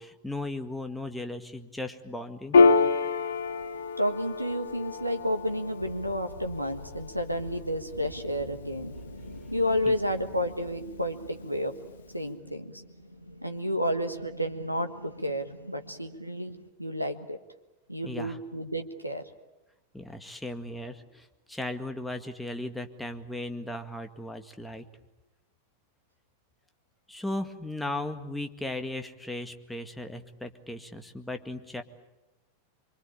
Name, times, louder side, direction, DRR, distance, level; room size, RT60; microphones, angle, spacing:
voice 1, 0.0-2.6 9.9-10.0 18.0-18.4 19.9-24.9 27.1-31.8, left 1 dB, 5° left, 7 dB, 1.9 m, -36 dB
Piano, 2.5-9.5, left 4 dB, 65° left, 1.4 m, -27 dB
sound 1, 3.3-16.7, equal, 85° left, 1.9 m, -46 dB
voice 2, 4.0-9.0 9.5-11.7 12.1-12.8 13.4-16.5 16.8-17.4 17.9-19.2, equal, 90° right, 6 dB, 1.5 m, -31 dB
25.5 x 24.5 x 8.7 m, 1.0 s
figure-of-eight pair, 90°, 0 cm